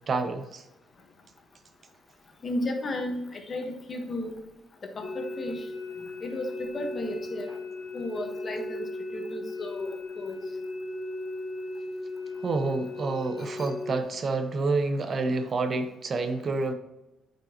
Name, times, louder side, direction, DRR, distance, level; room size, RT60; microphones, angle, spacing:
voice 1, 0.1-0.6 12.4-16.7, right 3 dB, 45° right, 8 dB, 0.8 m, -28 dB
voice 2, 2.4-4.4 4.8-5.7 6.2-7.5 7.9-8.9 9.1-10.4 13.4-13.7, left 1 dB, 40° left, 4 dB, 1.3 m, -34 dB
sound 1, 5.0-14.0, left 2 dB, 60° left, 1.2 m, -37 dB
9.2 x 5.3 x 3.0 m, 0.92 s
cardioid pair, 90°, 0 cm